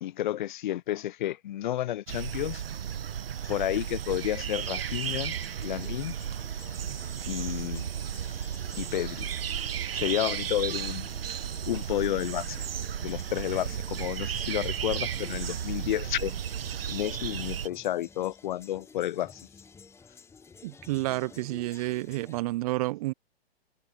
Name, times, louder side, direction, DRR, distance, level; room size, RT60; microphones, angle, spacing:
voice 1, 0.0-2.6 3.4-5.3 5.6-6.2 7.2-7.9 8.8-9.3 9.9-11.1 11.7-12.7 13.0-16.3 16.9-19.5, left 13 dB, 50° left, 0.8 m, -31 dB
sound 1, 2.1-17.7, right 9 dB, 70° right, 1.1 m, -34 dB
sound 2, 5.3-22.4, left 5 dB, 10° left, 1.2 m, -52 dB
voice 2, 20.6-23.1, right 19 dB, 40° right, 0.7 m, -30 dB
figure-of-eight pair, 120°, 30 cm